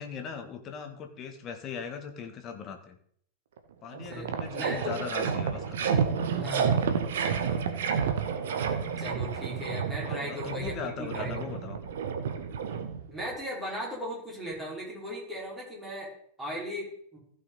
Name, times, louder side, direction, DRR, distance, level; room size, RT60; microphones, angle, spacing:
voice 1, 0.0-3.0 3.8-5.9 10.0-11.8, left 6 dB, 30° left, 6 dB, 1.7 m, -39 dB
sound 1, 3.6-3.7 3.9-13.3, right 6 dB, 60° right, 1.1 m, -30 dB
voice 2, 4.0-4.9 6.3-6.7 9.0-11.6 13.1-17.2, equal, 10° right, -4 dB, 4.7 m, -37 dB
15.5 x 5.9 x 4.0 m, 0.64 s
figure-of-eight pair, 90°, 0 cm